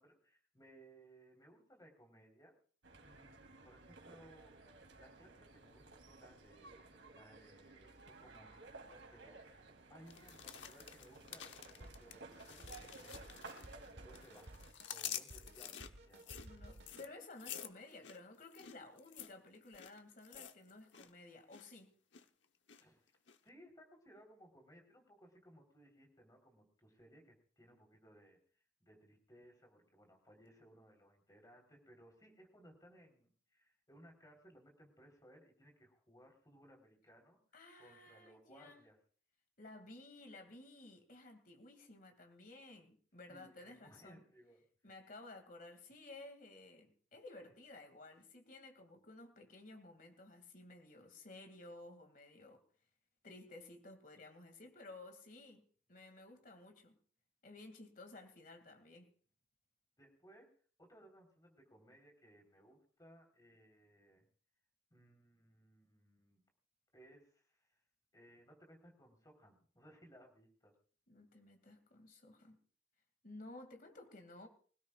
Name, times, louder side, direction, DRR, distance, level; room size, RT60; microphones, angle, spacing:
voice 1, 0.0-2.5 3.0-4.6 4.9-13.7 14.0-14.6 14.9-16.3 22.7-23.0 23.4-28.4 28.8-37.4 37.8-39.0 43.3-44.6 60.0-60.5 60.8-64.2 64.9-66.4 66.9-67.8 68.1-70.7, equal, 20° left, 4.2 m, -63 dB
sound 1, 2.8-14.7, right 3 dB, 80° right, 3.5 m, -56 dB
sound 2, 10.1-13.9 14.1-21.1 21.3-21.7 22.1-22.8 23.3-23.4, left 10 dB, 70° left, 1.1 m, -49 dB
Drum kit, 11.8-17.1, right 1 dB, 55° right, 1.4 m, -57 dB
voice 2, 16.4-21.9 37.5-38.8 39.6-44.2 44.8-52.6 53.2-55.6 55.9-57.0 57.4-59.1 71.1-72.6 73.2-74.5, left 2 dB, 45° left, 2.5 m, -55 dB
25.0 x 17.0 x 2.5 m
head